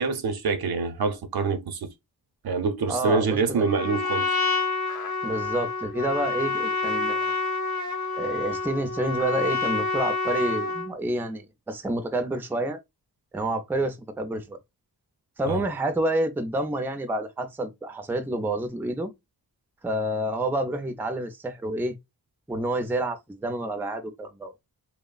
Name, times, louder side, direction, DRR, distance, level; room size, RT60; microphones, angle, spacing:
voice 1, 0.0-1.9 2.4-4.4 15.5-15.6, right 4 dB, 70° right, 0.6 m, -26 dB
voice 2, 2.9-3.7 5.2-7.4 8.2-12.8 13.3-14.6 15.4-19.1 19.8-21.9 22.5-24.5, right 1 dB, 5° right, 0.4 m, -28 dB
Trumpet, 3.6-10.9, left 4 dB, 50° left, 0.7 m, -28 dB
3.0 x 2.0 x 2.3 m
wide cardioid pair, 120°, 38 cm